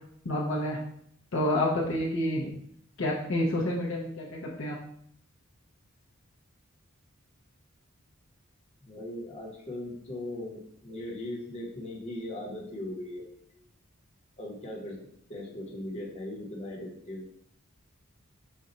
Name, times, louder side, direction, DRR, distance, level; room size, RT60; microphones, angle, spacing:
voice 1, 0.2-0.8 1.3-2.5 3.0-4.8, left 1 dB, 60° left, -3 dB, 0.8 m, -29 dB
voice 2, 8.8-13.6 14.4-15.0 15.3-17.2, left 1 dB, 30° left, -3 dB, 1.1 m, -39 dB
5.4 x 2.5 x 4.0 m, 0.70 s
head